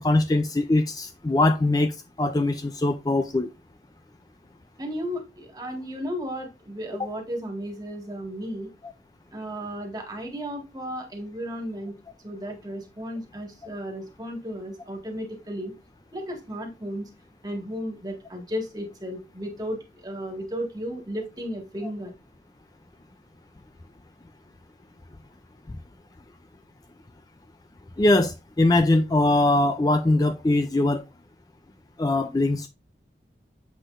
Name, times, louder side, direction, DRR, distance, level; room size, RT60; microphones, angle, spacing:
voice 1, 0.0-3.5 28.0-31.0 32.0-32.7, left 2 dB, 20° left, 0.4 m, -22 dB
voice 2, 4.8-8.7 9.3-11.9 12.2-15.7 16.1-17.1 17.4-22.1, equal, 20° right, 1.8 m, -34 dB
7.8 x 6.2 x 2.5 m
head